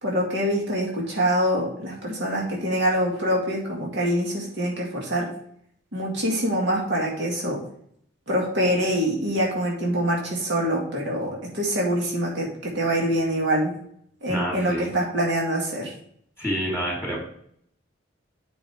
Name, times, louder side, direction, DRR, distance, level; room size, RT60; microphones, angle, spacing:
voice 1, 0.0-5.3 5.9-7.6 8.3-13.8 14.2-15.9, equal, 65° right, -3 dB, 2.2 m, -25 dB
voice 2, 14.3-14.9 16.4-17.2, equal, 5° right, -4 dB, 2.9 m, -28 dB
9.8 x 5.7 x 3.4 m, 0.67 s
head